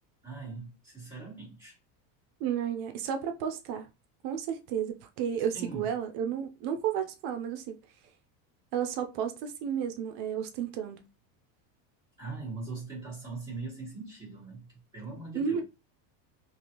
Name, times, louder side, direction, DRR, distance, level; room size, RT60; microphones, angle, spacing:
voice 1, 0.2-1.8 5.5-5.9 12.2-15.6, right 3 dB, 10° left, 1.8 m, -41 dB
voice 2, 2.4-3.9 4.2-7.8 8.7-11.0 15.3-15.6, right 8 dB, 55° right, 0.6 m, -32 dB
3.2 x 2.5 x 2.8 m
supercardioid pair, 145°, 49 cm